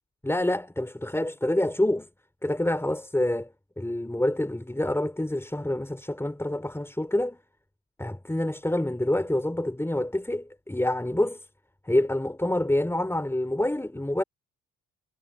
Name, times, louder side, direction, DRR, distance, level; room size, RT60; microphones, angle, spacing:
voice 1, 0.2-2.1 2.4-3.5 3.8-7.4 8.0-11.5 11.8-14.2, left 1 dB, 5° left, 3.8 m, -27 dB
supercardioid pair, 65°, 34 cm